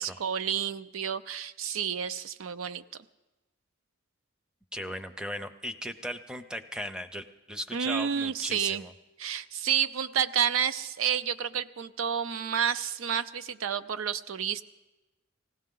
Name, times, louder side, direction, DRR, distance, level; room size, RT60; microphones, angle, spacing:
voice 1, 0.0-2.8 7.7-8.8 9.2-14.6, right 8 dB, 85° right, 14 dB, 0.5 m, -30 dB
voice 2, 4.7-8.9, equal, 5° right, 9 dB, 0.5 m, -37 dB
19.5 x 16.0 x 3.8 m, 1.1 s
head